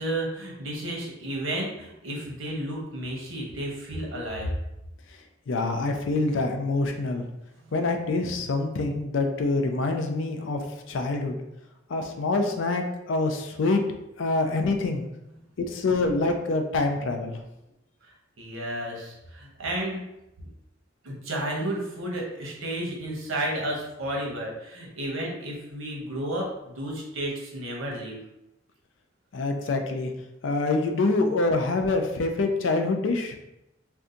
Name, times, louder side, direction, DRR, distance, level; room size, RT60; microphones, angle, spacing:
voice 1, 0.0-4.5 18.4-20.1 21.0-28.2, right 1 dB, 90° right, -1 dB, 0.9 m, -32 dB
voice 2, 5.5-7.2 7.7-11.4 11.9-13.8 14.2-15.0 15.6-17.4 29.3-30.1 30.4-33.4, left 3 dB, 70° left, 5 dB, 0.4 m, -26 dB
2.6 x 2.3 x 3.7 m, 0.89 s
head